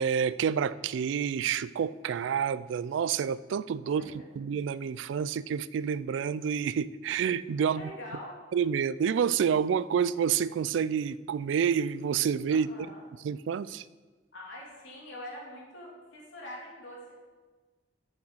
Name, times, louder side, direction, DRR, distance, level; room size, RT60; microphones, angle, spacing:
voice 1, 0.0-7.8 8.5-12.7 13.2-13.8, right 7 dB, 75° right, 0.3 m, -28 dB
voice 2, 3.8-4.3 7.6-8.3 12.5-13.1 14.3-17.1, left 1 dB, 90° left, 3.0 m, -44 dB
8.7 x 6.3 x 6.3 m
head